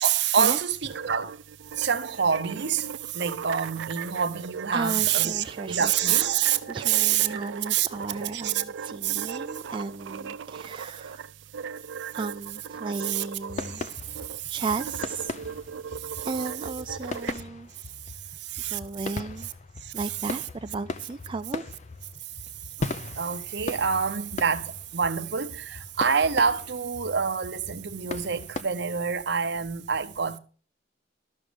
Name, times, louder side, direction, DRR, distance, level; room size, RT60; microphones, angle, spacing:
voice 1, 0.0-1.4 1.8-6.6 6.8-7.3 7.7-7.9 8.3-8.6 9.0-9.4 13.0-13.2 13.6-13.9 14.3-14.6 16.0-16.3 18.4-18.8 19.8-19.9 22.8-30.4, right 7 dB, 65° right, 0.8 m, -26 dB
sound 1, 0.7-17.3, right 7 dB, 90° right, 0.4 m, -39 dB
voice 2, 4.7-6.3 6.7-11.2 12.1-13.9 14.5-15.3 16.2-17.7 18.6-19.5 19.9-21.6, right 4 dB, 25° right, 0.4 m, -34 dB
sound 2, 13.5-28.6, left 3 dB, 40° left, 0.6 m, -39 dB
12.5 x 6.3 x 5.1 m
head